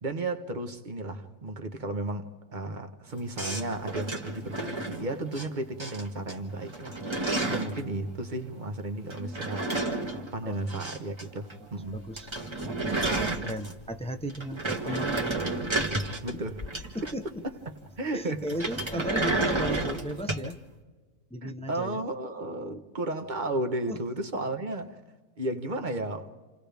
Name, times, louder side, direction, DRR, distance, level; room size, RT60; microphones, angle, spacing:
voice 1, 0.0-9.9 10.3-12.0 16.2-16.8 17.4-17.5 18.0-18.5 19.1-19.2 21.4-25.0 25.4-26.3, right 2 dB, 35° right, 1.2 m, -34 dB
sound 1, 3.4-5.5 5.8-6.3 6.6-7.8 9.1-11.2 11.5-11.6 11.9-12.0 12.2-13.9 14.3-17.4 18.5-20.5, right 2 dB, 20° right, 1.6 m, -31 dB
voice 2, 10.1-10.6 11.9-12.3 12.7-15.4 16.9-17.2 18.1-20.6 21.3-22.0 23.9-24.0, equal, 5° left, 0.5 m, -35 dB
30.0 x 28.0 x 3.5 m
omnidirectional pair, 1.6 m